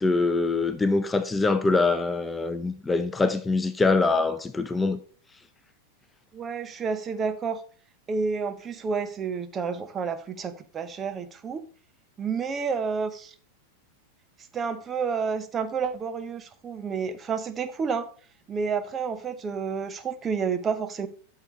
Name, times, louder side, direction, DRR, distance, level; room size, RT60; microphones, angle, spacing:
voice 1, 0.0-5.0, left 3 dB, 10° left, 0.6 m, -24 dB
voice 2, 6.3-7.6 8.1-11.6 12.2-13.3 14.5-18.1 18.5-21.1, right 5 dB, 20° right, 0.9 m, -30 dB
12.0 x 6.7 x 3.2 m
figure-of-eight pair, 90°, 0 cm